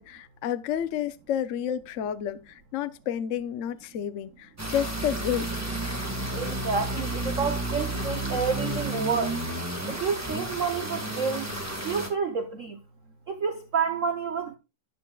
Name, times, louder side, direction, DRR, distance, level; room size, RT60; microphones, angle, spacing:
voice 1, 0.0-5.6, left 9 dB, 70° left, 0.7 m, -30 dB
sound 1, 4.6-12.1, right 1 dB, 10° right, 1.4 m, -31 dB
voice 2, 6.3-9.4 9.9-11.5 11.8-12.8 13.3-14.6, right 5 dB, 55° right, 0.9 m, -29 dB
12.5 x 9.7 x 2.3 m
omnidirectional pair, 2.2 m